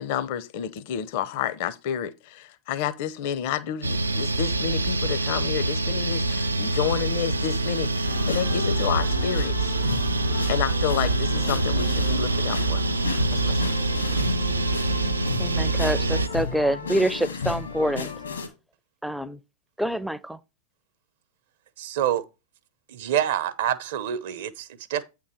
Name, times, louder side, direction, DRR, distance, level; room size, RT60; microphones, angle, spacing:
voice 1, 0.0-9.7 10.5-12.8 13.3-13.8, left 10 dB, 55° left, 0.7 m, -30 dB
sound 1, 3.8-16.3, right 2 dB, 90° right, 0.4 m, -25 dB
sound 2, 8.0-18.5, left 4 dB, 85° left, 1.9 m, -33 dB
voice 2, 15.4-18.1 19.0-19.4 19.8-20.4, right 1 dB, ahead, 0.4 m, -26 dB
voice 3, 21.8-22.2 22.9-25.0, right 10 dB, 60° right, 0.7 m, -27 dB
8.5 x 3.8 x 4.4 m
figure-of-eight pair, 95°, 0 cm